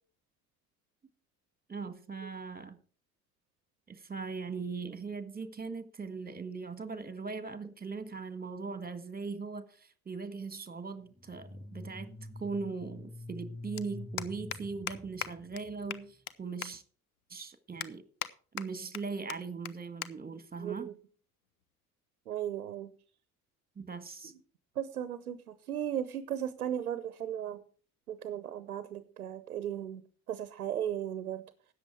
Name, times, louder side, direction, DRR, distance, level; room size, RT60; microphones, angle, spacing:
voice 1, 1.7-2.8 3.9-12.1 12.4-16.8 17.3-18.0 18.5-20.9 23.7-24.3, right 4 dB, 20° right, 1.6 m, -40 dB
sound 1, 11.2-16.0, left 2 dB, ahead, 0.9 m, -46 dB
sound 2, 11.5-11.6 13.0-13.1 13.3-13.5 13.8-13.9 14.2-14.6 14.9-15.0 15.2-15.3 15.6-15.7 15.9-16.3 16.6-16.7 17.2-17.3 17.8-18.3 18.6-19.0 19.3-19.4 19.6-19.7 20.0-20.1 20.4-20.7 21.4-21.7, left 13 dB, 80° left, 0.7 m, -38 dB
voice 2, 20.6-20.9 22.3-22.9 24.8-27.6 28.1-30.0 30.3-31.4, right 10 dB, 85° right, 0.7 m, -36 dB
13.5 x 9.0 x 4.7 m
figure-of-eight pair, 40°, 43 cm